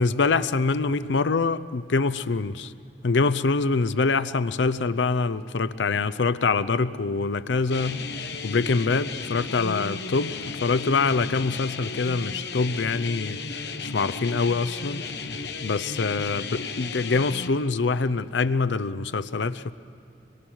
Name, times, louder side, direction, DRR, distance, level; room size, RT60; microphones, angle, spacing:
voice 1, 0.0-2.7 3.0-8.0 8.4-13.4 13.8-15.0 15.6-19.7, left 4 dB, 90° left, 14 dB, 0.6 m, -24 dB
sound 1, 7.7-17.5, left 4 dB, 65° left, 1.1 m, -34 dB
25.0 x 22.0 x 6.3 m, 2.9 s
head